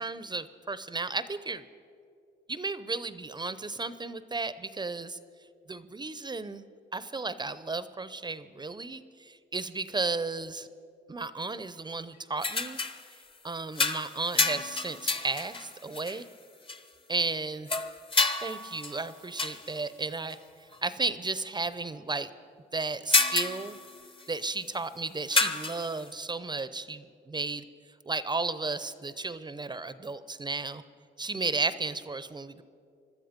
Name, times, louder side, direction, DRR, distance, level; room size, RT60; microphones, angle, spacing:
voice 1, 0.0-1.7 2.5-5.2 5.7-6.6 6.9-10.7 11.1-12.8 13.4-16.2 17.1-17.7 18.4-20.4 20.8-22.3 22.7-23.7 24.3-27.6 28.1-30.8 31.2-32.6, right 3 dB, 20° right, 14 dB, 0.6 m, -34 dB
sound 1, 12.4-13.0 13.7-16.2 16.7-16.8 17.7-19.7 20.3-20.4 20.7-20.8 22.8-24.3 25.3-26.0, left 3 dB, 25° left, 0.9 m, -29 dB
21.5 x 12.5 x 5.2 m, 2.4 s
cardioid pair, 90°, 20 cm